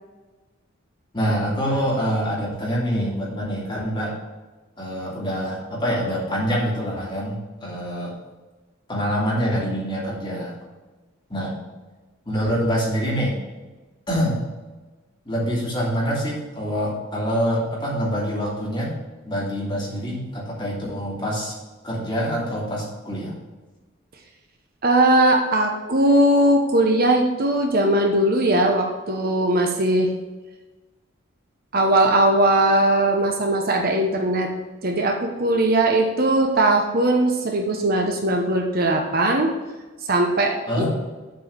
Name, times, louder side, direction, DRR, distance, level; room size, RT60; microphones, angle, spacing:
voice 1, 1.1-4.1 4.8-8.2 8.9-10.6 11.3-11.6 12.2-13.3 14.1-14.4 15.2-18.9 19.2-21.5 21.8-23.4 40.7-40.9, equal, 25° left, -6 dB, 2.9 m, -25 dB
voice 2, 24.8-30.1 31.7-34.5 34.8-39.5 40.1-40.8, right 1 dB, 45° right, 2 dB, 0.9 m, -19 dB
7.6 x 4.6 x 6.8 m, 1.2 s
head